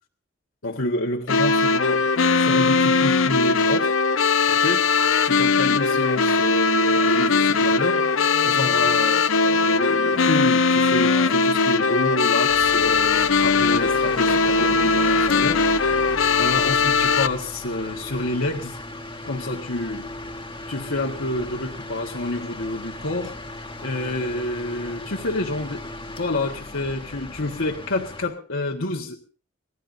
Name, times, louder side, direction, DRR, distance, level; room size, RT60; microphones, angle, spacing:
voice 1, 0.6-2.1 2.4-3.9 4.5-4.9 5.2-8.0 8.4-16.1 16.4-18.8 19.2-20.1 20.7-23.4 23.8-25.9 26.2-29.2, left 2 dB, 65° left, 1.4 m, -28 dB
sound 1, 1.3-17.3, left 4 dB, 85° left, 0.7 m, -20 dB
sound 2, 4.4-16.7, right 1 dB, 75° right, 7.4 m, -40 dB
sound 3, 12.5-28.2, left 2 dB, 25° left, 1.5 m, -37 dB
25.0 x 17.5 x 2.6 m
head